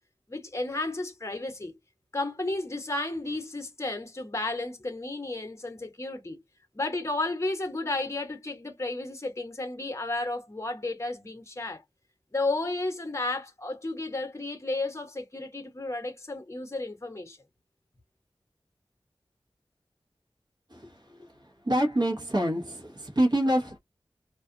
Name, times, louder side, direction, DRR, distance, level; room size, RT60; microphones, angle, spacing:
voice 1, 0.3-1.8 2.1-6.4 6.7-11.8 12.3-17.4, left 2 dB, 30° left, 0.9 m, -33 dB
voice 2, 21.7-23.8, right 1 dB, 50° right, 1.1 m, -26 dB
2.5 x 2.4 x 2.6 m
wide cardioid pair, 55°, 10 cm